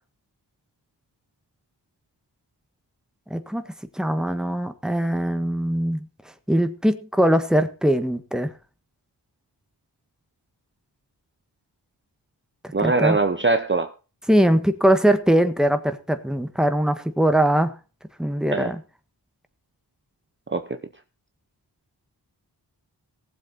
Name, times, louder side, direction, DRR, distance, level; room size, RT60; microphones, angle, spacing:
voice 1, 3.3-3.6 4.0-6.0 6.5-8.5 12.8-13.2 14.3-17.7 18.2-18.8, right 1 dB, ahead, 1.5 m, -21 dB
voice 2, 12.7-13.9 18.5-18.7 20.5-20.8, right 3 dB, 25° right, 0.9 m, -22 dB
18.5 x 7.8 x 4.1 m
wide cardioid pair, 75°, 42 cm